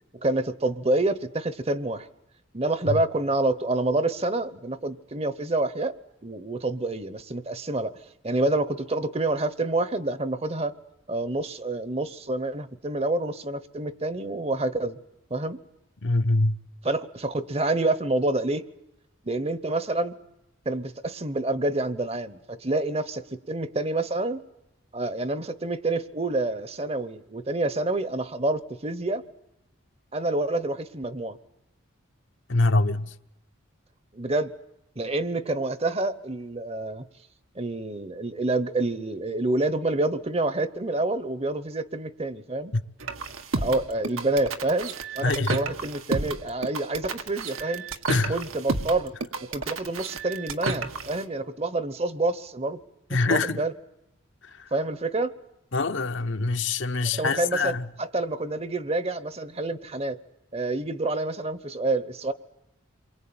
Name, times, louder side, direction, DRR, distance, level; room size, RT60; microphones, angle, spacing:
voice 1, 0.1-2.1 2.5-6.0 6.2-8.0 8.2-10.7 11.1-15.0 15.3-15.6 16.8-18.7 19.2-20.2 20.6-24.4 24.9-29.2 30.1-31.4 34.1-34.5 35.0-37.1 37.6-42.7 43.6-47.8 48.3-49.1 49.5-52.8 53.1-53.7 54.7-55.3 57.1-60.2 60.5-62.3, right 2 dB, 30° right, 0.9 m, -28 dB
voice 2, 16.0-16.6 32.5-33.1 42.7-42.8 45.2-45.6 48.1-48.4 53.1-53.6 54.6-54.7 55.7-57.8, left 3 dB, 65° left, 1.0 m, -24 dB
sound 1, 43.0-51.2, right 3 dB, 90° right, 1.9 m, -31 dB
28.0 x 23.5 x 8.8 m
head